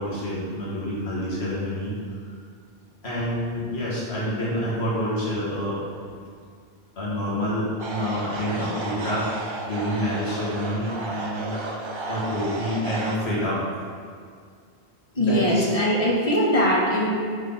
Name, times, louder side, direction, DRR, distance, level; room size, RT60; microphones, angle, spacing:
voice 1, 0.0-1.9 3.0-5.8 7.0-11.5 12.1-13.6 15.1-15.6, equal, 70° left, -8 dB, 2.2 m, -27 dB
sound 1, 7.8-13.2, right 3 dB, 40° right, 0.4 m, -33 dB
voice 2, 15.1-17.1, equal, 35° left, -2 dB, 0.8 m, -21 dB
7.9 x 4.0 x 4.1 m, 2.1 s
omnidirectional pair, 1.1 m